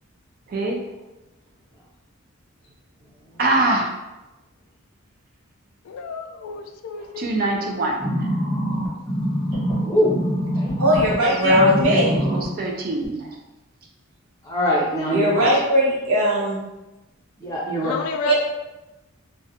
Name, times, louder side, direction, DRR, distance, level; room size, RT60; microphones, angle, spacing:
voice 1, 0.5-0.8 3.4-4.0 7.0-8.4 11.3-13.4, right 2 dB, 45° right, 1 dB, 0.3 m, -24 dB
voice 2, 5.8-7.3 10.9-11.2 15.1-15.4 17.8-18.3, left 4 dB, 80° left, 5 dB, 0.3 m, -31 dB
sound 1, 8.0-11.2 11.5-12.5 13.0-13.1, equal, 5° right, 1.0 m, -24 dB
voice 3, 9.8-10.2 10.5-10.7 14.4-15.5 17.4-17.9, equal, 15° left, -6 dB, 0.6 m, -22 dB
voice 4, 10.8-12.1 15.1-16.6 18.2-18.3, equal, 80° right, -5 dB, 0.8 m, -19 dB
2.5 x 2.1 x 2.7 m, 1.0 s
head